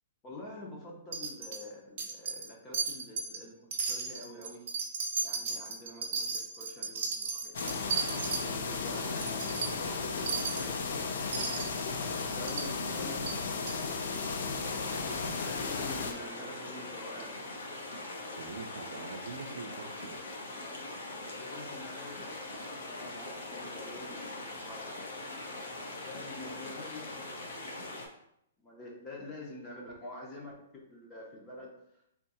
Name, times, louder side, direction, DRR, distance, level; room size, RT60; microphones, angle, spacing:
voice 1, 0.2-4.7 5.2-7.8 8.4-10.3 10.6-11.7 12.2-14.6 15.4-17.4 21.4-25.3 26.0-27.9 28.6-31.7, left 1 dB, 15° left, -2 dB, 0.6 m, -47 dB
Wind chime, 1.1-1.6 2.0-2.5 2.7-3.4 3.7-8.4 8.8-8.9 9.2-9.7 10.3-10.7 11.3-11.8 12.5-12.7 13.3-13.4 13.7-13.8, right 5 dB, 40° right, 0.8 m, -34 dB
sound 1, 7.5-16.1, left 4 dB, 60° left, 0.5 m, -34 dB
sound 2, 14.6-28.1, left 2 dB, 75° left, 1.0 m, -42 dB
voice 2, 18.3-20.2, right 4 dB, 70° right, 0 dB, 0.4 m, -45 dB
3.5 x 2.8 x 4.1 m, 0.75 s
hypercardioid pair, 180°, 0 cm